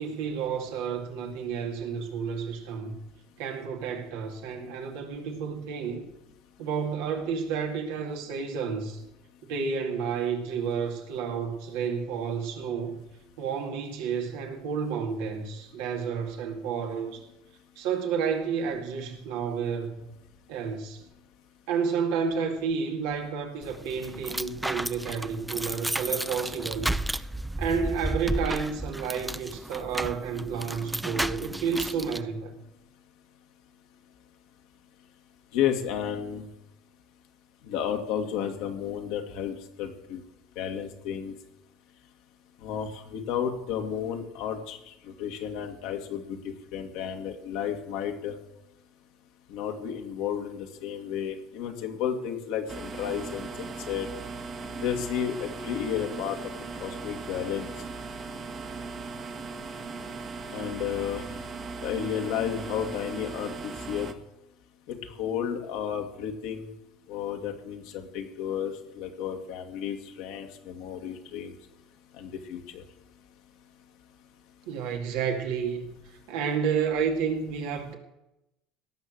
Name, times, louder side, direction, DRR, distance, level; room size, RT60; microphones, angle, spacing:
voice 1, 0.0-2.9 3.4-6.1 6.6-9.0 9.4-13.0 13.4-17.3 17.8-20.1 20.5-21.0 21.7-26.9 27.6-32.6 74.7-78.0, right 6 dB, 75° right, 3 dB, 2.3 m, -31 dB
sound 1, 23.6-32.2, right 1 dB, 5° right, 0.5 m, -33 dB
voice 2, 35.5-36.5 37.6-40.2 40.6-41.3 42.6-48.4 49.5-54.1 54.8-56.4 56.8-57.7 60.5-61.2 61.8-64.1 64.9-66.7 67.1-71.6 72.2-72.8, left 9 dB, 70° left, 4 dB, 2.1 m, -32 dB
sound 2, 52.7-64.1, right 4 dB, 40° right, 1.6 m, -38 dB
17.5 x 6.5 x 7.6 m, 0.90 s
hypercardioid pair, 80°, 0 cm